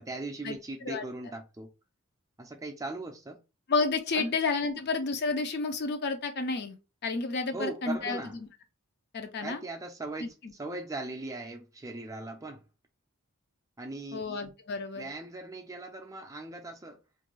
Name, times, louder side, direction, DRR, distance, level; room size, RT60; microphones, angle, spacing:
voice 1, 0.0-1.7 2.4-3.4 4.1-4.4 7.5-8.4 9.4-12.6 13.8-14.4 14.9-17.0, right 2 dB, 15° right, 0.4 m, -39 dB
voice 2, 3.7-6.8 7.0-8.5 9.1-9.6 10.2-10.5 14.1-15.1, left 4 dB, 50° left, 0.5 m, -31 dB
2.5 x 2.2 x 3.0 m
head